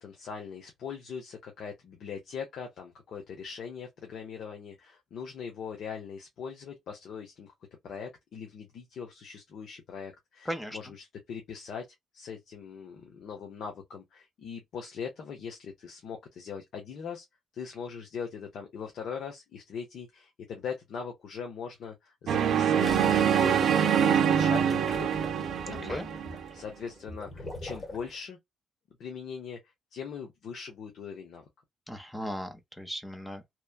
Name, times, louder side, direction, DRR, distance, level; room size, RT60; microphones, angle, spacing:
voice 1, 0.0-7.5 7.8-11.9 12.1-17.2 17.5-23.2 23.4-25.3 25.7-28.4 29.0-29.6 29.9-31.4, left 6 dB, 70° left, 0.8 m, -41 dB
voice 2, 10.5-10.8 25.9-26.1 31.9-33.5, equal, 5° left, 0.7 m, -37 dB
sound 1, 22.3-26.5, right 8 dB, 70° right, 0.5 m, -25 dB
sound 2, 22.8-28.2, left 2 dB, 30° left, 1.3 m, -42 dB
3.0 x 2.2 x 2.3 m
cardioid pair, 90°, 0 cm